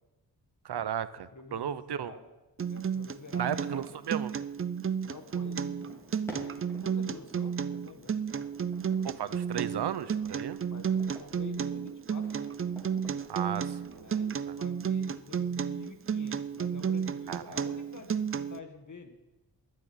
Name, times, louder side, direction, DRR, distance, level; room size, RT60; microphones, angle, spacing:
voice 1, 0.6-2.1 3.4-4.3 9.0-10.6 13.3-14.1 14.5-14.6 17.3-17.6, right 9 dB, 65° right, 15 dB, 0.7 m, -35 dB
voice 2, 1.3-2.3 2.7-4.1 5.0-6.0 6.8-8.1 10.7-12.5 13.9-19.2, left 4 dB, 45° left, 5 dB, 1.8 m, -48 dB
Acoustic guitar, 2.6-18.6, right 7 dB, 30° right, 0.4 m, -32 dB
sound 1, 5.3-14.3, right 1 dB, 5° left, 3.5 m, -51 dB
11.5 x 7.4 x 9.7 m, 1.0 s
wide cardioid pair, 115°, 43 cm